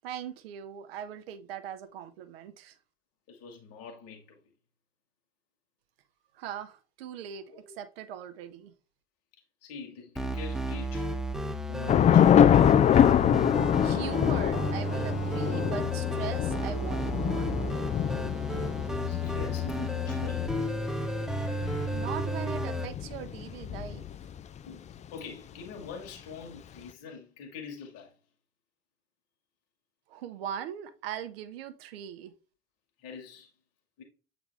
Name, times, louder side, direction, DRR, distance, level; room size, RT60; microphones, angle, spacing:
voice 1, 0.0-2.7 6.3-8.7 13.8-17.5 21.9-24.1 30.1-32.3, right 9 dB, 65° right, 0.9 m, -40 dB
voice 2, 3.3-4.4 7.5-7.7 9.6-11.1 11.7-12.3 19.1-20.6 23.7-23.8 24.7-28.2 33.0-33.5 34.0-34.1, left 5 dB, 50° left, 2.0 m, -44 dB
sound 1, 10.2-22.9, left 1 dB, ahead, 1.0 m, -32 dB
Thunder / Rain, 11.9-24.4, left 9 dB, 20° left, 0.4 m, -25 dB
8.0 x 3.9 x 3.4 m
figure-of-eight pair, 60°, 32 cm